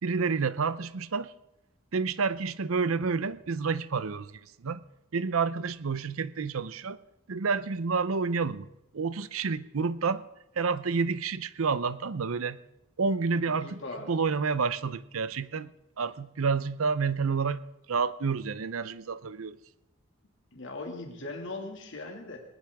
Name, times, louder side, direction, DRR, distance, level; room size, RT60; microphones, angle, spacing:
voice 1, 0.0-1.3 1.9-4.3 4.6-4.8 5.1-7.0 7.3-8.7 8.9-10.2 10.6-12.6 13.0-13.8 14.1-15.7 16.0-17.6 17.9-19.6, right 5 dB, 80° right, 0.7 m, -29 dB
voice 2, 13.6-14.1 20.5-22.4, left 2 dB, 60° left, 2.3 m, -39 dB
20.0 x 19.5 x 3.6 m
head